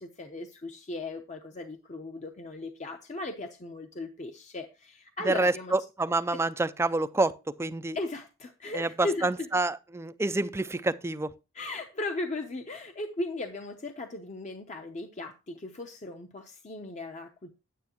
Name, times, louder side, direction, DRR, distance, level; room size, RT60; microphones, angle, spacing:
voice 1, 0.0-5.8 6.3-6.4 7.9-9.5 11.5-17.5, left 2 dB, 35° left, 0.7 m, -37 dB
voice 2, 5.3-8.0 8.7-8.9 9.2-11.3, right 2 dB, 10° right, 0.4 m, -28 dB
9.7 x 9.4 x 2.9 m
head